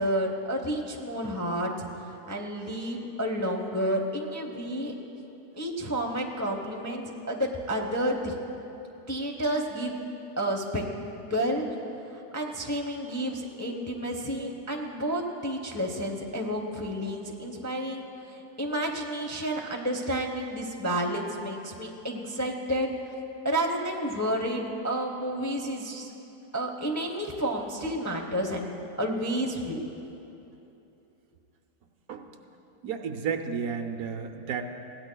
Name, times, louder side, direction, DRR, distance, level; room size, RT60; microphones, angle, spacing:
voice 1, 0.0-1.7 2.1-4.9 5.6-8.3 9.1-9.9 10.4-10.9 11.3-11.7 12.1-22.9 23.4-26.1 26.5-29.8, equal, 15° left, 1 dB, 0.5 m, -30 dB
voice 2, 32.8-34.6, right 6 dB, 70° right, 5 dB, 1.1 m, -32 dB
21.0 x 16.5 x 2.3 m, 2.9 s
omnidirectional pair, 1.7 m